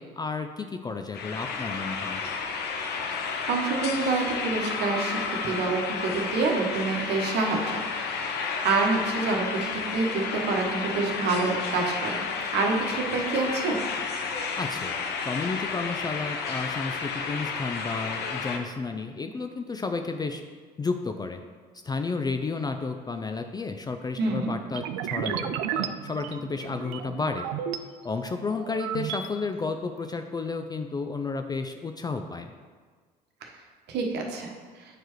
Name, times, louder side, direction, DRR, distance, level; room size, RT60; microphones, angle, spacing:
voice 1, 0.0-2.2 14.6-15.0 15.2-20.4 20.8-21.4 21.8-27.5 28.0-32.5, left 4 dB, 20° left, 6 dB, 0.4 m, -32 dB
sound 1, 1.1-18.6, left 5 dB, 50° left, 0.7 m, -31 dB
voice 2, 3.5-12.3 12.5-13.7 24.2-24.5 33.4-33.5 33.9-34.5, right 3 dB, 55° right, 1 dB, 1.1 m, -27 dB
sound 2, 24.7-27.8 28.3-29.3, right 10 dB, 70° right, 0.4 m, -33 dB
8.0 x 4.5 x 3.0 m, 1.5 s
hypercardioid pair, 65°, 21 cm